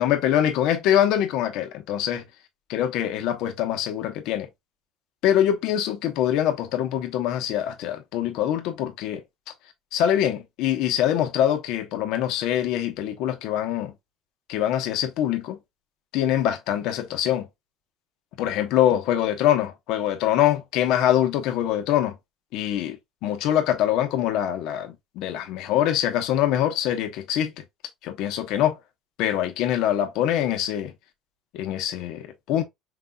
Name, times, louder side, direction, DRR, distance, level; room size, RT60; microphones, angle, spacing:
voice 1, 0.0-2.2 2.7-4.5 5.2-9.2 9.9-13.9 14.5-15.6 16.1-17.5 18.4-22.1 22.5-23.0 23.2-27.5 28.0-28.8 29.2-30.9 31.5-32.6, left 11 dB, 70° left, 1.0 m, -24 dB
5.2 x 3.9 x 2.3 m
cardioid pair, 120°, 0 cm